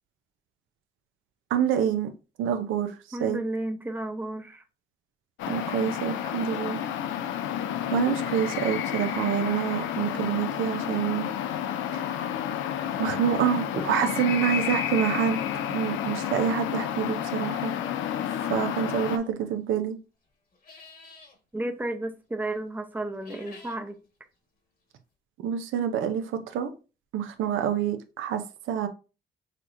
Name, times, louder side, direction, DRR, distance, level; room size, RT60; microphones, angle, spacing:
voice 1, 1.5-2.1 2.4-3.4 5.5-6.8 7.9-11.3 11.9-12.1 13.0-15.4 15.7-17.7 18.4-20.0 25.4-26.7 27.1-28.9, right 8 dB, 85° right, 0.6 m, -27 dB
voice 2, 3.1-4.6 21.5-24.0, right 1 dB, 10° right, 0.7 m, -32 dB
sound 1, 5.4-19.2, left 10 dB, 80° left, 0.5 m, -30 dB
sound 2, 18.9-19.3 20.5-21.4 23.1-23.8, left 3 dB, 50° left, 1.4 m, -50 dB
5.8 x 3.0 x 2.5 m
cardioid pair, 90°, 20 cm